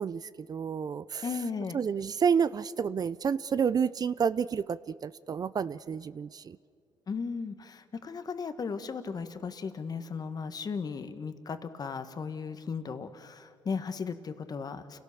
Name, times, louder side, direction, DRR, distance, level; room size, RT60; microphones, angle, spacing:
voice 1, 0.0-1.2 1.7-6.6, right 6 dB, 40° right, 17 dB, 0.6 m, -30 dB
voice 2, 1.2-1.8 7.1-15.0, left 5 dB, 40° left, 9 dB, 1.6 m, -36 dB
29.0 x 17.5 x 7.1 m, 2.2 s
supercardioid pair, 70°, 10 cm